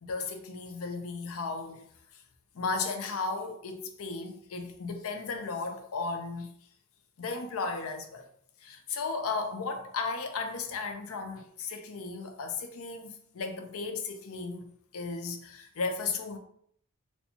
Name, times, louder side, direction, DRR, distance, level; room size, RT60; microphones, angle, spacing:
voice 1, 0.0-1.8 2.5-6.5 7.2-8.2 8.6-14.7 14.9-16.4, left 4 dB, 65° left, 0.5 m, -35 dB
4.1 x 2.2 x 2.8 m
head